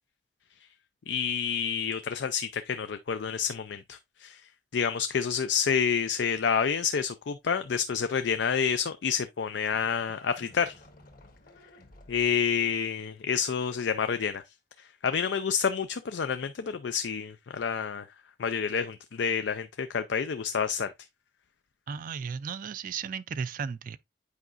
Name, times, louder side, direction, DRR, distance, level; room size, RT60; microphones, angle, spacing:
voice 1, 1.1-4.4 4.7-10.7 12.1-14.4 14.8-18.1 18.4-20.9, left 6 dB, 75° left, 0.4 m, -29 dB
Livestock farm animals working animals, 9.2-14.1, left 2 dB, 55° left, 1.4 m, -54 dB
voice 2, 21.9-24.0, right 6 dB, 50° right, 0.3 m, -35 dB
8.3 x 4.9 x 2.5 m
head